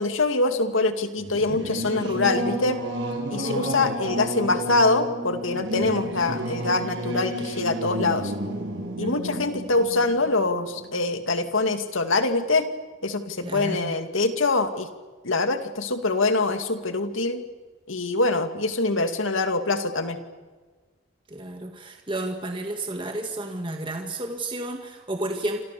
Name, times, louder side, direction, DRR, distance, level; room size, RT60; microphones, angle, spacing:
voice 1, 0.0-2.8 3.3-8.3 9.0-12.7 13.0-14.9 15.2-17.4 17.9-20.2, left 3 dB, 80° left, 7 dB, 2.4 m, -24 dB
Singing / Musical instrument, 1.2-11.3, right 1 dB, 65° right, 7.0 m, -31 dB
voice 2, 9.0-9.4 13.4-14.0 21.3-25.6, right 1 dB, 25° right, 4 dB, 1.9 m, -32 dB
27.5 x 27.5 x 6.9 m, 1.4 s
head